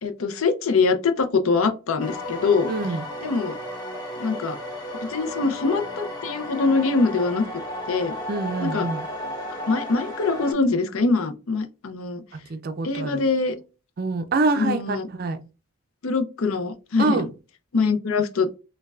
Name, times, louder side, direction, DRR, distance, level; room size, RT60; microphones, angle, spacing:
voice 1, 0.0-2.7 3.2-3.6 4.2-4.6 5.0-7.4 7.9-8.1 8.6-8.9 9.7-12.2 12.8-13.6 14.6-15.1 16.0-17.2 17.7-18.5, left 4 dB, 70° left, 0.5 m, -23 dB
sound 1, 2.0-10.5, left 1 dB, 20° left, 1.0 m, -34 dB
voice 2, 2.7-3.0 8.3-9.0 12.5-13.2 14.0-15.4 17.0-17.3, right 3 dB, 45° right, 0.4 m, -25 dB
5.3 x 2.2 x 2.3 m
head